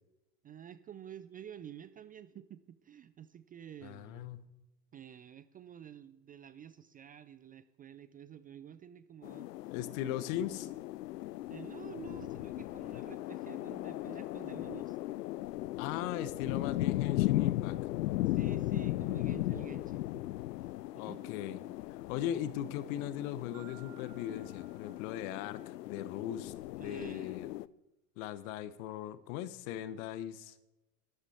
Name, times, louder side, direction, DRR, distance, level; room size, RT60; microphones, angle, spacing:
voice 1, 0.4-4.3 4.9-9.5 11.5-15.0 18.2-20.3 20.9-21.4 26.8-27.4, right 9 dB, 20° right, 13 dB, 0.4 m, -50 dB
voice 2, 3.8-4.5 9.7-10.7 15.8-17.8 21.0-21.6 21.9-27.5 28.2-30.5, left 11 dB, 55° left, 16 dB, 1.1 m, -39 dB
sound 1, 9.2-27.7, left 16 dB, 75° left, 0.6 m, -37 dB
Marimba xylophone, 23.5-25.7, right 19 dB, 45° right, 1.2 m, -60 dB
13.0 x 11.5 x 4.3 m, 0.99 s
figure-of-eight pair, 80°, 49 cm